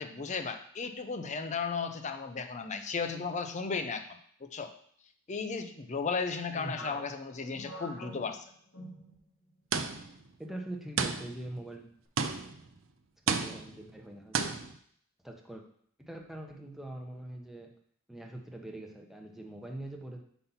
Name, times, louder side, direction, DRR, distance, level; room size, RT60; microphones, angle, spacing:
voice 1, 0.0-4.7 5.3-8.5, left 5 dB, 35° left, 7 dB, 0.5 m, -35 dB
voice 2, 6.5-7.0 10.4-11.9 13.3-14.5 15.2-15.6 16.0-17.7 18.1-20.2, right 1 dB, ahead, 1 dB, 0.8 m, -43 dB
sound 1, 6.8-9.6 9.9-10.1 10.8-11.2, left 1 dB, 85° left, 1.9 m, -47 dB
sound 2, 9.7-10.2 11.0-11.5 12.2-12.7 13.3-13.8 14.3-14.8, right 5 dB, 70° right, 0.5 m, -32 dB
5.6 x 4.0 x 5.5 m, 0.62 s
head